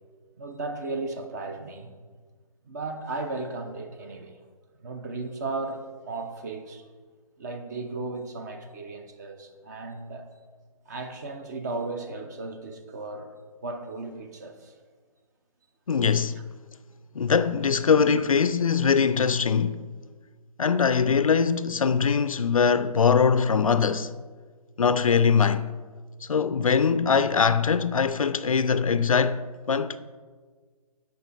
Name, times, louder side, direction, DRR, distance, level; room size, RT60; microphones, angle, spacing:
voice 1, 0.4-1.9 2.6-4.4 4.8-6.8 7.4-10.3 10.9-13.4 13.6-14.7 18.0-18.2, right 3 dB, 30° right, 0.6 m, -35 dB
voice 2, 15.9-16.4 17.2-19.8 20.6-24.1 24.8-25.7 26.3-29.4 29.7-30.0, left 6 dB, 60° left, 0.4 m, -22 dB
16.0 x 5.9 x 2.6 m
figure-of-eight pair, 140°, 19 cm